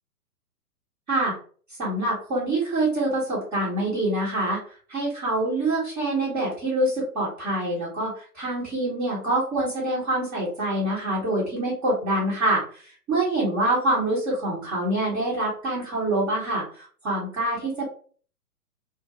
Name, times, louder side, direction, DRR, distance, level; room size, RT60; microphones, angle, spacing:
voice 1, 1.8-4.6 4.9-12.8 13.1-17.9, right 1 dB, 15° right, -8 dB, 0.6 m, -25 dB
2.3 x 2.1 x 2.7 m, 0.42 s
figure-of-eight pair, 115°, 47 cm